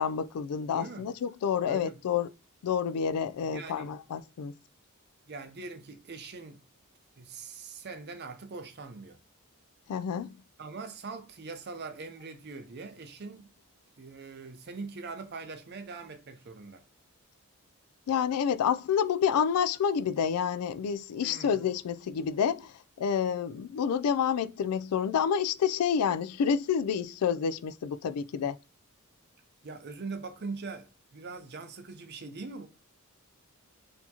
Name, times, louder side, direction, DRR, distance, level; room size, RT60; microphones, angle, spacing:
voice 1, 0.0-2.3 2.6-4.5 9.9-10.4 18.1-22.7 23.0-28.6, left 7 dB, 85° left, 0.3 m, -28 dB
voice 2, 0.7-1.1 1.7-2.0 3.4-3.9 5.3-6.6 7.2-9.2 10.6-13.5 14.0-16.8 21.2-21.6 29.6-32.7, right 4 dB, 45° right, 0.6 m, -42 dB
4.4 x 2.8 x 2.8 m
head